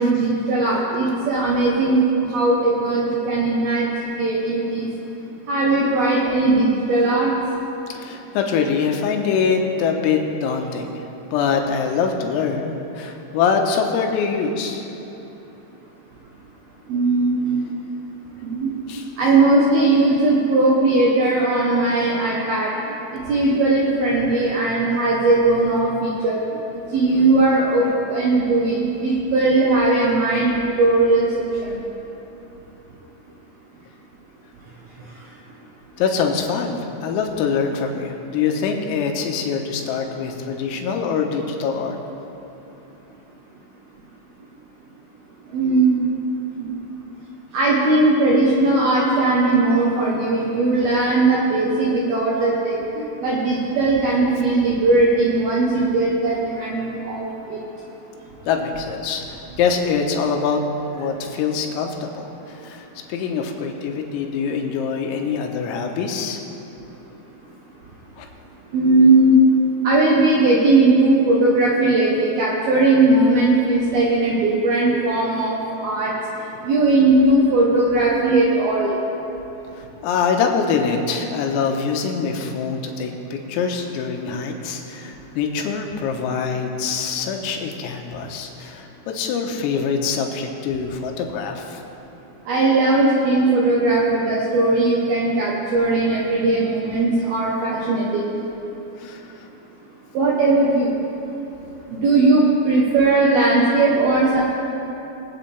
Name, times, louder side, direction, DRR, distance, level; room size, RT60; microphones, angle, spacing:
voice 1, 0.0-3.9 4.2-4.9 5.5-7.3 16.9-17.7 18.4-22.7 23.3-26.4 26.9-31.3 31.6-31.8 45.5-46.1 46.6-46.7 47.5-57.6 68.7-69.4 69.8-76.1 76.6-78.9 92.5-98.3 100.1-100.9 101.9-104.4, right 2 dB, 75° right, -4 dB, 2.2 m, -18 dB
voice 2, 8.0-10.9 11.3-14.9 18.9-19.1 36.0-36.8 37.0-42.0 58.5-60.6 60.9-62.8 63.1-66.4 68.2-68.3 79.8-91.8 99.0-99.2, left 6 dB, 90° left, 2 dB, 3.7 m, -24 dB
24.0 x 8.6 x 3.4 m, 3.0 s
omnidirectional pair, 6.0 m